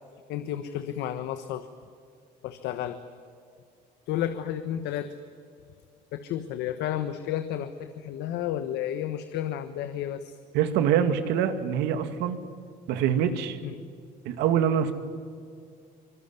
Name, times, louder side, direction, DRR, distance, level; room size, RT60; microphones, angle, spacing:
voice 1, 0.3-1.7 2.4-3.0 4.1-5.1 6.1-10.3 13.6-13.8, left 11 dB, 85° left, 9 dB, 1.4 m, -32 dB
voice 2, 10.5-12.4 12.9-13.6 14.3-14.9, right 8 dB, 90° right, 9 dB, 2.2 m, -24 dB
25.0 x 21.5 x 9.7 m, 2.3 s
cardioid pair, 110°, 17 cm